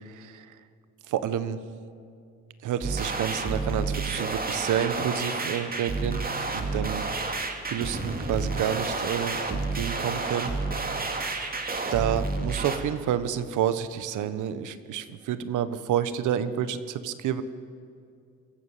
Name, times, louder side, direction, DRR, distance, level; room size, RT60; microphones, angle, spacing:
voice 1, 0.1-0.5 1.1-1.6 2.6-6.2 6.5-7.0 7.7-10.5 11.9-17.4, right 9 dB, 80° right, 13 dB, 1.2 m, -29 dB
sound 1, 2.8-12.8, right 3 dB, 30° right, 2.6 m, -30 dB
24.0 x 14.0 x 8.4 m, 2.4 s
cardioid pair, 90°, 30 cm